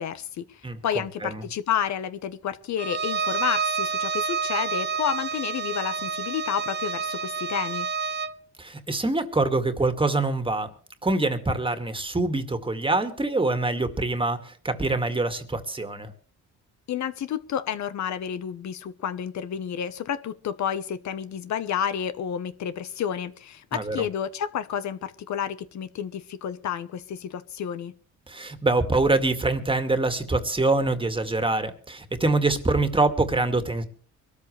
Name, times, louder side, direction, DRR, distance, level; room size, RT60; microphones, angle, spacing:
voice 1, 0.0-7.9 16.9-27.9, left 9 dB, 65° left, 12 dB, 1.1 m, -30 dB
Bowed string instrument, 2.8-8.4, right 5 dB, 35° right, 0.8 m, -29 dB
voice 2, 8.6-10.7 11.0-16.1 23.7-24.0 28.3-33.8, right 2 dB, 15° right, 8 dB, 2.1 m, -25 dB
24.0 x 13.5 x 3.3 m, 0.41 s
cardioid pair, 90°, 30 cm